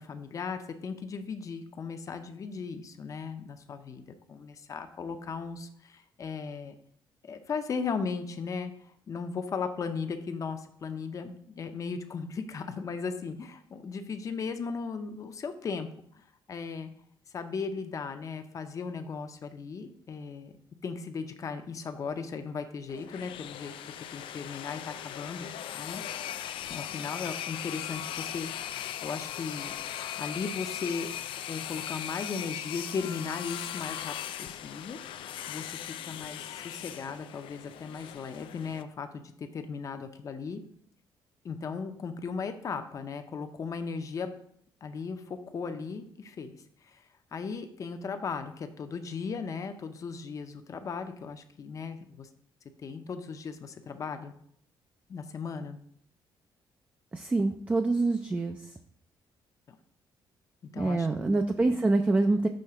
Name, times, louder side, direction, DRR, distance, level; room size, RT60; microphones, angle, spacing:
voice 1, 0.0-6.8 7.2-15.9 16.1-16.9 17.3-20.5 20.8-23.7 24.1-26.0 26.7-29.7 30.2-31.1 31.5-35.0 35.5-40.6 41.4-44.3 44.8-47.0 47.3-52.3 52.8-54.3 55.1-55.8 59.7-59.8 60.7-61.7, left 5 dB, 40° left, 8 dB, 0.6 m, -37 dB
sound 1, 22.9-38.8, left 11 dB, 80° left, 0.4 m, -39 dB
voice 2, 57.1-58.6 60.8-62.5, right 2 dB, 15° right, 6 dB, 0.3 m, -26 dB
6.4 x 3.2 x 5.7 m, 0.65 s
cardioid pair, 140°, 9 cm